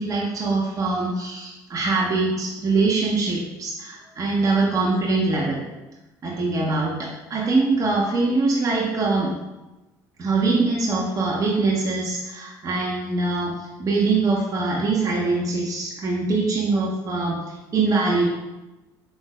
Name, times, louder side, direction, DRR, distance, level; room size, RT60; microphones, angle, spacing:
voice 1, 0.0-5.6 6.2-9.3 10.2-18.3, right 3 dB, 40° right, -3 dB, 1.5 m, -23 dB
6.9 x 4.0 x 5.1 m, 1.1 s
supercardioid pair, 75°, 9 cm